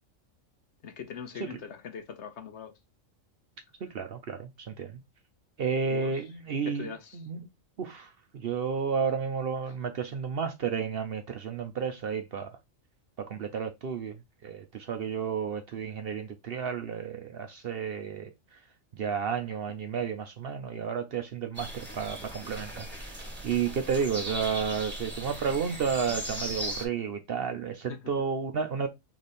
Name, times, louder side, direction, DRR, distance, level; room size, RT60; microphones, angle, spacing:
voice 1, 0.8-2.7 5.9-6.2 6.6-7.2 27.9-28.0, left 6 dB, 60° left, 1.0 m, -41 dB
voice 2, 3.9-5.0 5.6-7.5 7.8-12.6 13.2-18.3 18.9-28.9, right 6 dB, 60° right, 0.7 m, -32 dB
sound 1, 21.5-26.8, right 1 dB, 10° right, 1.6 m, -38 dB
3.4 x 3.3 x 4.1 m
omnidirectional pair, 1.4 m